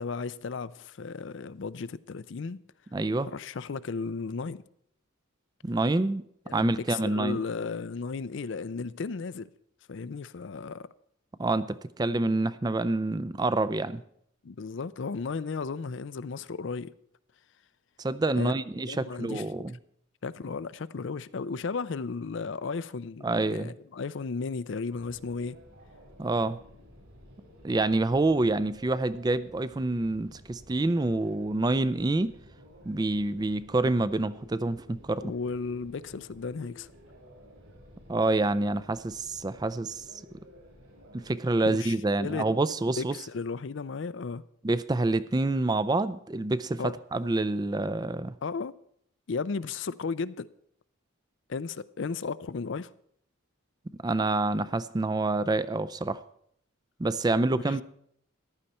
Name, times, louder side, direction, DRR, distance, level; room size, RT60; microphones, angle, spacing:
voice 1, 0.0-2.6 3.2-4.6 6.5-9.5 9.9-10.9 14.4-16.9 18.4-18.5 18.9-19.4 20.2-25.6 35.2-36.9 41.6-42.5 43.0-44.4 46.8-46.9 48.4-48.7 49.3-50.5 51.5-52.9 57.5-57.8, left 4 dB, 60° left, 0.5 m, -34 dB
voice 2, 2.9-3.3 5.6-6.2 6.5-7.4 11.4-14.0 18.0-19.7 23.2-23.7 26.2-26.6 27.6-32.3 32.9-35.3 38.1-40.0 41.1-43.2 44.6-48.3 54.0-56.2 57.0-57.8, right 2 dB, 20° right, 0.4 m, -27 dB
sound 1, 24.9-41.3, left 1 dB, 65° right, 4.2 m, -53 dB
14.5 x 11.0 x 4.3 m
head